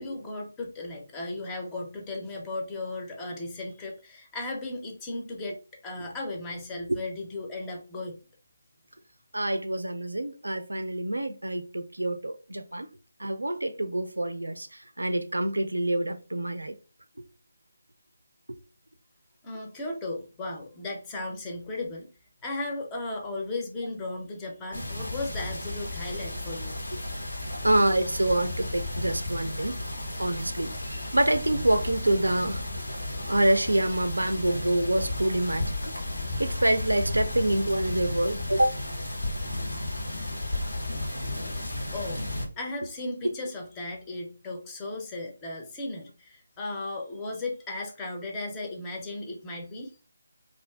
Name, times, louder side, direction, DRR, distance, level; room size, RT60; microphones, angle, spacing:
voice 1, 0.0-8.2 19.4-22.1 22.4-26.8 41.9-42.3 42.6-49.9, left 2 dB, 15° left, 0.5 m, -36 dB
voice 2, 9.3-12.9 13.2-14.7 15.0-16.7 26.9-27.0 27.6-29.7 30.2-32.6 33.3-35.9 36.4-38.8, right 1 dB, 85° right, 0.3 m, -26 dB
sound 1, 24.7-42.5, left 1 dB, 85° left, 0.8 m, -33 dB
2.5 x 2.4 x 2.2 m
figure-of-eight pair, 155°, 0 cm